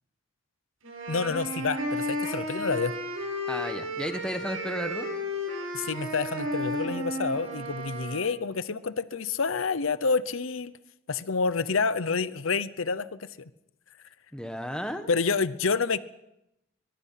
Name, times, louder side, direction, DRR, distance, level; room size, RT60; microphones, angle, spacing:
sound 1, 0.8-8.3, equal, 85° right, 7.5 m, -33 dB
voice 1, 1.1-2.9 5.7-10.7 11.1-13.5 15.1-16.0, left 4 dB, 75° left, 15 dB, 0.8 m, -28 dB
voice 2, 3.5-5.1 14.3-15.1, equal, 5° left, 7 dB, 1.5 m, -33 dB
23.0 x 22.0 x 5.8 m, 0.87 s
head